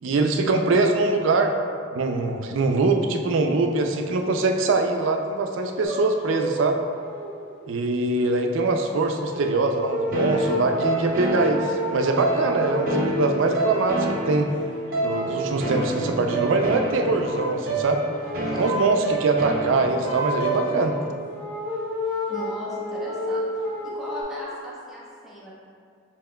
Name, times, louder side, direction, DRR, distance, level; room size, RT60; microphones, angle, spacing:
voice 1, 0.0-1.5 1.9-6.8 7.7-14.5 15.0-18.0 18.6-21.0, right 3 dB, 85° right, 4 dB, 0.4 m, -23 dB
sound 1, 5.8-6.7 7.0-7.4 8.2-8.3 9.2-14.5 14.9-16.2 16.4-16.8 17.1-17.6 17.8-19.0 19.3-24.2, left 1 dB, 85° left, 1.4 m, -31 dB
sound 2, 10.1-21.1, right 2 dB, 45° right, 0.6 m, -29 dB
voice 2, 22.3-23.4 23.8-25.5, equal, ahead, -8 dB, 0.8 m, -37 dB
6.9 x 2.9 x 2.2 m, 2.2 s
head